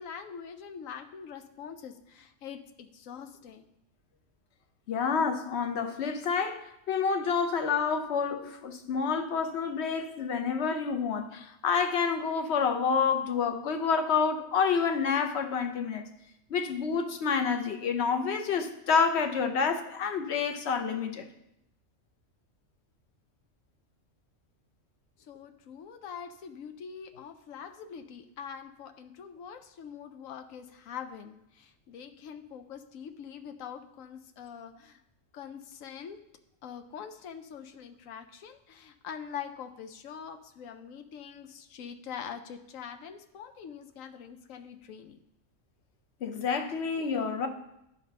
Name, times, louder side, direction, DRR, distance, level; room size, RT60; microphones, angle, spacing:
voice 1, 0.0-3.7 25.2-35.0 35.3-36.2 36.6-45.2, left 7 dB, 85° left, 1.1 m, -44 dB
voice 2, 4.9-16.0 16.5-21.3 46.2-47.5, left 6 dB, 60° left, 1.0 m, -28 dB
11.0 x 4.2 x 5.3 m
omnidirectional pair, 1.3 m